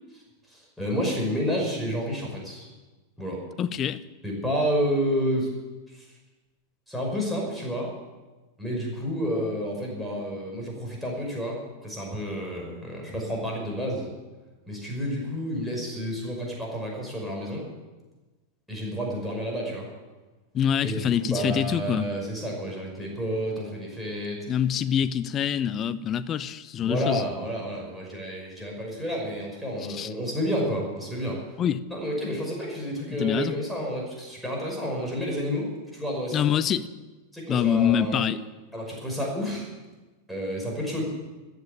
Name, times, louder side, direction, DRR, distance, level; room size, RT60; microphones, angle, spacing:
voice 1, 0.5-2.7 3.2-3.4 4.2-5.5 5.9-6.1 6.9-7.9 8.6-14.1 14.7-17.7 18.7-19.9 20.8-24.5 26.8-31.4 31.9-36.4 37.3-38.3 38.7-39.7 40.3-41.0, equal, ahead, -2 dB, 5.7 m, -30 dB
voice 2, 3.6-4.0 20.5-22.1 24.5-27.2 29.9-30.1 31.6-31.8 33.2-33.5 36.3-36.9 37.5-38.4, left 9 dB, 30° left, 14 dB, 0.7 m, -25 dB
14.5 x 9.3 x 8.5 m, 1.2 s
figure-of-eight pair, 90°, 0 cm